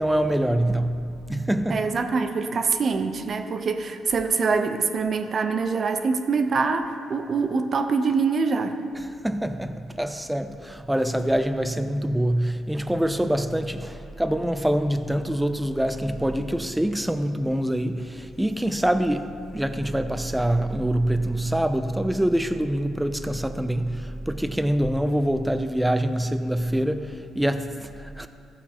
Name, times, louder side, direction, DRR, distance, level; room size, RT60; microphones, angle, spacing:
voice 1, 0.0-1.9 8.9-28.3, right 1 dB, 5° right, 0.5 m, -25 dB
voice 2, 1.7-8.8, right 4 dB, 50° right, 0.7 m, -24 dB
14.5 x 8.1 x 3.0 m
cardioid pair, 90°, 0 cm